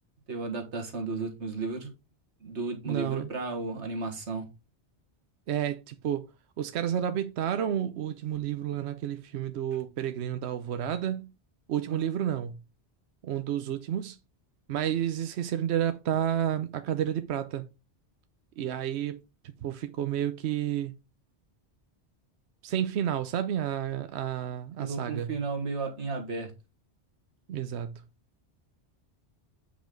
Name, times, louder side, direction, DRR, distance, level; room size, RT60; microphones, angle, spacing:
voice 1, 0.3-1.9 2.4-4.5 11.9-12.1 24.8-26.5, right 3 dB, 90° right, 1.9 m, -34 dB
voice 2, 2.8-3.3 5.5-6.2 6.6-11.3 11.7-12.6 13.2-14.2 14.7-17.7 18.6-19.2 19.6-20.9 22.6-25.3 27.5-28.0, right 10 dB, 75° right, 0.9 m, -30 dB
8.2 x 5.1 x 3.8 m
omnidirectional pair, 1.1 m